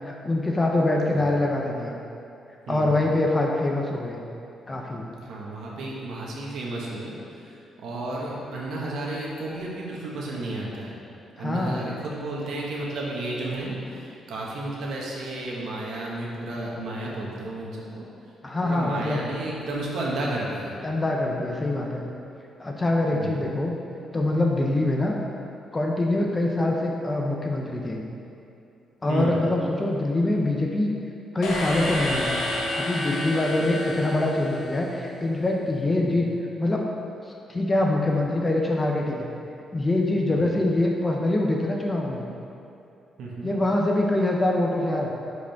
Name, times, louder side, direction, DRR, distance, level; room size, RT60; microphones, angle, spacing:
voice 1, 0.0-1.9 2.7-4.2 4.7-5.1 11.4-11.8 18.4-19.2 20.8-22.0 22.6-23.7 24.1-25.2 25.7-28.0 29.0-30.9 31.3-32.4 32.7-36.3 36.6-36.9 37.5-39.2 39.7-42.2 43.4-45.1, left 2 dB, 15° left, 0 dB, 0.6 m, -24 dB
voice 2, 2.7-3.0 5.2-11.0 11.4-18.0 18.6-20.8 23.1-23.4 29.1-29.4 36.0-36.2 40.3-40.6 43.2-43.5, right 2 dB, 70° right, -4 dB, 1.5 m, -32 dB
sound 1, 31.4-35.3, left 1 dB, 90° left, 1.4 m, -29 dB
10.5 x 5.0 x 3.5 m, 2.7 s
cardioid pair, 175°, 0 cm